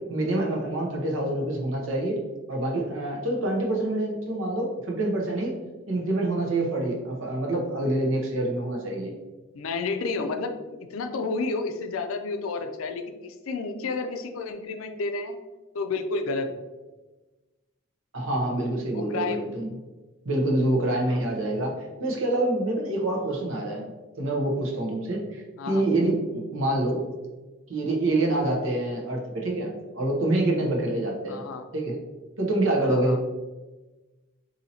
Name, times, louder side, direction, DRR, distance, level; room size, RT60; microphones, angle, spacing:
voice 1, 0.1-2.2 2.5-5.5 5.9-9.1 18.1-19.7 20.2-21.7 22.0-23.9 24.2-27.0 27.7-31.4 31.7-32.0 32.4-33.2, right 1 dB, 70° right, 0 dB, 0.8 m, -26 dB
voice 2, 9.5-15.4 15.7-16.5 18.9-19.4 21.0-21.3 25.6-25.8 26.7-26.8 31.3-31.6 32.8-33.2, left 3 dB, 80° left, 6 dB, 0.4 m, -31 dB
2.8 x 2.8 x 4.0 m, 1.2 s
head